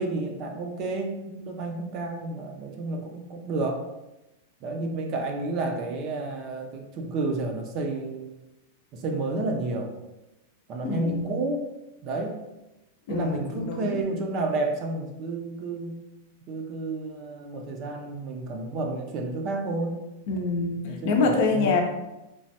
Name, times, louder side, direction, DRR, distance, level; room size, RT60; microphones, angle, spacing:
voice 1, 0.0-3.8 4.6-8.3 8.9-9.9 10.7-11.7 12.0-12.4 13.1-15.9 16.5-20.0 20.8-21.8, right 2 dB, 40° right, 3 dB, 0.5 m, -31 dB
voice 2, 10.8-11.4 13.1-14.0 20.3-21.8, left 4 dB, 60° left, 2 dB, 0.6 m, -26 dB
3.2 x 2.2 x 2.7 m, 0.96 s
supercardioid pair, 135°, 0 cm